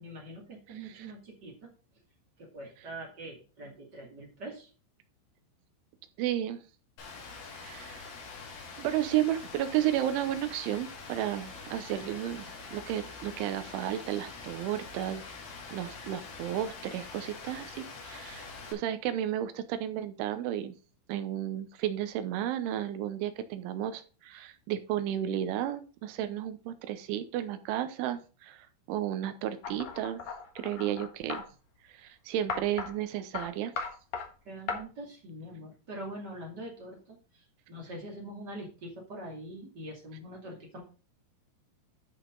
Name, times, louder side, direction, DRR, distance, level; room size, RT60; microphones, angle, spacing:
voice 1, 0.0-1.7 2.4-4.7 34.4-40.8, right 1 dB, 35° right, -1 dB, 1.7 m, -44 dB
voice 2, 0.8-1.1 6.2-6.6 7.6-8.1 8.8-15.2 15.7-20.7 21.1-30.2 30.6-31.4 31.9-33.7, right 11 dB, 80° right, 10 dB, 3.1 m, -33 dB
Rain, 7.0-18.7, left 4 dB, 50° left, 3.4 m, -45 dB
sound 1, 29.6-31.4 32.5-32.9 33.3-33.5 33.8-34.3 34.7-34.8, left 5 dB, 85° left, 1.5 m, -36 dB
12.5 x 5.7 x 3.8 m, 0.34 s
omnidirectional pair, 5.8 m